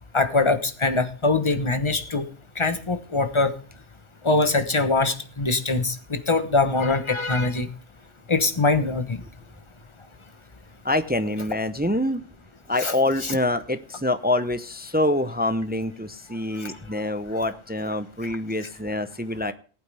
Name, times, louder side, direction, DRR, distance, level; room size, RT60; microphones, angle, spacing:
voice 1, 0.1-2.2 2.6-3.5 4.2-7.7 8.3-9.0 12.8-12.9, left 3 dB, 25° left, 9 dB, 1.0 m, -22 dB
voice 2, 10.8-12.2 12.7-19.5, left 1 dB, 10° right, 11 dB, 0.4 m, -25 dB
19.0 x 8.6 x 3.4 m, 0.40 s
omnidirectional pair, 1.2 m